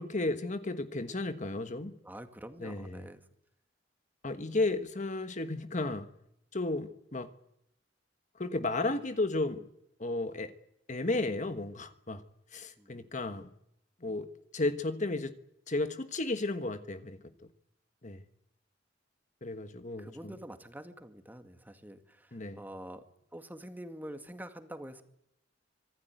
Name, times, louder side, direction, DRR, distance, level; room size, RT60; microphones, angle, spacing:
voice 1, 0.0-1.9 2.6-3.1 4.2-6.1 6.5-7.3 8.4-9.7 10.0-10.5 10.9-12.2 12.5-13.5 14.0-14.3 14.5-15.3 15.7-17.2 18.0-18.2 19.4-20.3 22.3-22.6, left 2 dB, 40° left, 1.4 m, -33 dB
voice 2, 2.0-3.2 12.8-13.1 20.0-23.0 23.3-25.0, right 1 dB, 10° right, 2.1 m, -46 dB
25.5 x 19.5 x 9.3 m
head